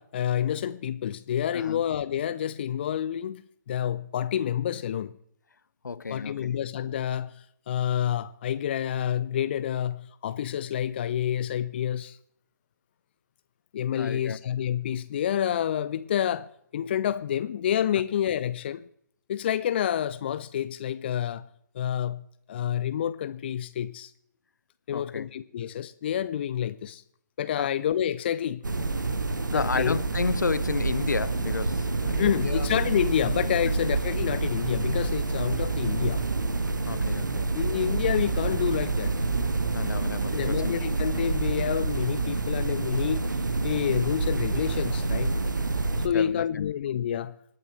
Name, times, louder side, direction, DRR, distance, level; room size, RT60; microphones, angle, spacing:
voice 1, 0.0-3.4 3.7-5.1 6.1-12.2 13.7-18.8 19.3-21.5 21.7-24.1 24.9-27.0 27.4-28.6 29.5-30.0 32.0-36.2 37.5-39.2 40.3-43.2 43.6-45.4 46.0-47.4, left 10 dB, 30° left, 0.4 m, -28 dB
voice 2, 1.5-1.8 5.8-6.6 14.0-14.4 24.9-25.3 27.6-27.7 29.5-32.7 33.6-33.9 36.9-37.5 39.7-40.7 46.1-46.7, left 4 dB, 65° left, 0.7 m, -32 dB
sound 1, 28.6-46.1, right 3 dB, 70° right, 1.1 m, -28 dB
26.5 x 9.1 x 3.1 m
figure-of-eight pair, 135°, 10 cm